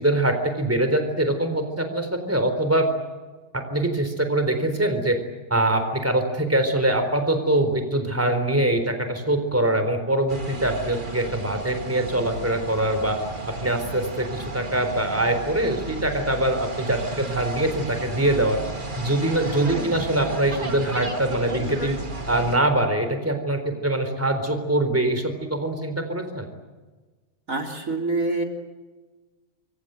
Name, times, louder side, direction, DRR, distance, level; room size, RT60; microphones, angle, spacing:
voice 1, 0.0-2.9 3.5-5.2 5.5-13.2 13.6-18.6 19.0-22.0 22.3-26.5, right 1 dB, 10° right, 7 dB, 4.0 m, -23 dB
sound 1, 10.3-22.6, right 2 dB, 35° right, 2.3 m, -34 dB
voice 2, 19.5-20.1 27.5-28.4, right 3 dB, 60° right, 2 dB, 3.9 m, -27 dB
27.0 x 24.0 x 7.9 m, 1.3 s
omnidirectional pair, 1.6 m